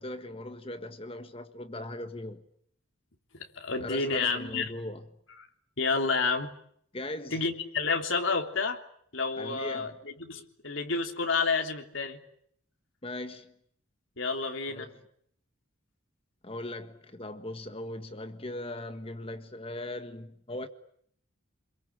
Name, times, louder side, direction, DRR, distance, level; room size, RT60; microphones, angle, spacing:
voice 1, 0.0-2.4 3.8-5.1 6.9-7.4 9.4-10.0 13.0-13.5 14.7-15.0 16.4-20.7, left 1 dB, 25° left, 1.6 m, -39 dB
voice 2, 3.3-4.7 5.8-6.5 7.3-8.8 9.1-12.2 14.2-14.9, left 4 dB, 65° left, 3.4 m, -30 dB
29.0 x 22.0 x 8.9 m
head